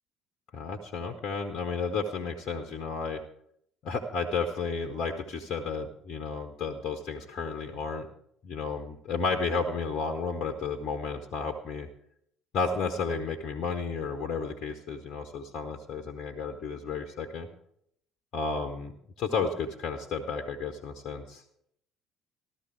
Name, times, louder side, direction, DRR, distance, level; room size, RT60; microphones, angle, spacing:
voice 1, 0.5-3.2 3.8-8.1 8.4-11.9 12.5-17.5 18.3-18.9 19.2-21.4, left 4 dB, 50° left, 6 dB, 1.3 m, -32 dB
14.0 x 13.0 x 4.6 m, 0.69 s
figure-of-eight pair, 55°, 0 cm